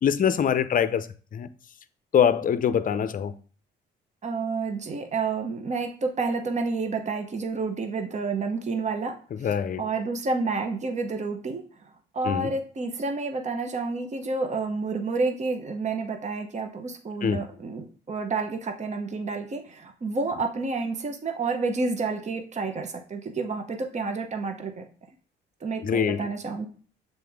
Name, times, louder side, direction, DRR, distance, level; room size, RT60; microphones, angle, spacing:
voice 1, 0.0-1.5 2.1-3.3 9.4-9.8 12.2-12.5 17.2-17.4 25.8-26.3, left 8 dB, 45° left, 0.5 m, -24 dB
voice 2, 4.2-9.2 9.4-24.9 25.6-26.7, right 4 dB, 35° right, 0.9 m, -30 dB
6.8 x 4.0 x 3.5 m
cardioid pair, 90°, 20 cm